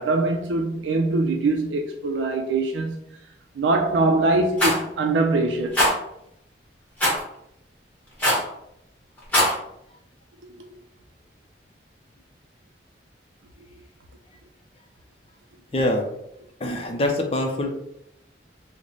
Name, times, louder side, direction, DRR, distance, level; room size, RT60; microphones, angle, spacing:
voice 1, 0.0-3.0 3.5-5.9 10.4-10.7 13.6-13.7, right 2 dB, 90° right, 0.4 m, -23 dB
Rattle, 4.6-4.8 5.7-5.9 7.0-7.2 8.2-8.5 9.2-9.5, left 1 dB, 10° left, 1.1 m, -20 dB
voice 2, 15.7-16.1 16.6-17.7, left 1 dB, 30° left, 0.5 m, -24 dB
3.1 x 2.1 x 3.9 m
head